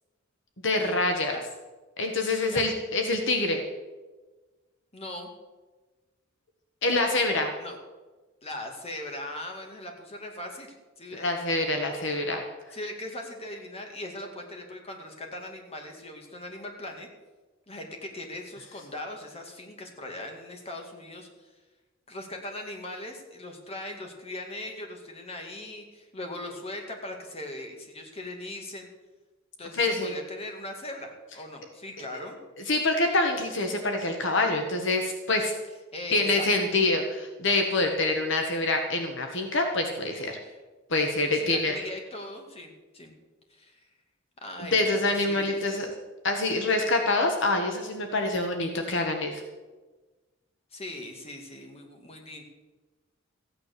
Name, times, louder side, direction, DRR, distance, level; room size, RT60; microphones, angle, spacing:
voice 1, 0.6-1.4 2.0-3.6 6.8-7.5 11.2-12.4 29.7-30.1 32.7-35.5 36.1-40.4 40.9-41.7 44.6-45.9 46.2-49.4, left 2 dB, 65° left, 4 dB, 1.4 m, -26 dB
voice 2, 4.9-5.3 7.6-7.8 8.4-11.3 12.7-17.1 17.7-21.5 22.1-28.9 29.6-32.4 35.9-36.5 40.1-40.2 40.4-40.6 41.3-43.1 43.5-43.8 44.4-45.6 46.7-46.8 50.7-52.4, left 1 dB, 30° left, 3 dB, 2.2 m, -40 dB
15.0 x 9.3 x 6.8 m, 1.2 s
head